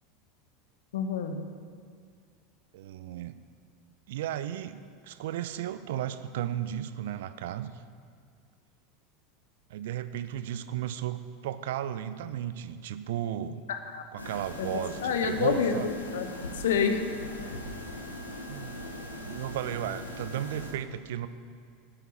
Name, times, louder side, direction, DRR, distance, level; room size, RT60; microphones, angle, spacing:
voice 1, 0.9-1.4 13.7-14.0 14.6-16.3 16.5-17.0, left 6 dB, 70° left, 7 dB, 1.0 m, -28 dB
voice 2, 2.7-3.4 4.1-7.7 9.7-13.6 14.1-15.9 18.5-18.7 19.3-21.3, right 11 dB, 65° right, 13 dB, 0.5 m, -34 dB
sound 1, 14.2-20.7, left 1 dB, 90° left, 1.3 m, -40 dB
9.1 x 8.4 x 7.1 m, 2.1 s
figure-of-eight pair, 80°, 0 cm